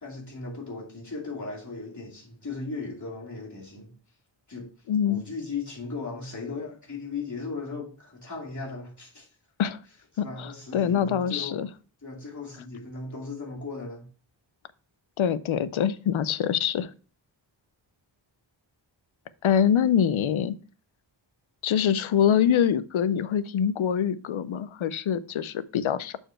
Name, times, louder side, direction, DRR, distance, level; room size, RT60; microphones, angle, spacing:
voice 1, 0.0-3.9 4.5-4.7 5.0-9.3 10.2-11.6 12.0-14.1, left 4 dB, 35° left, 2.6 m, -37 dB
voice 2, 4.9-5.2 9.6-9.8 10.2-11.7 15.2-16.9 19.4-20.6 21.6-26.2, left 8 dB, 80° left, 0.6 m, -24 dB
6.6 x 4.5 x 4.4 m
wide cardioid pair, 100°, 48 cm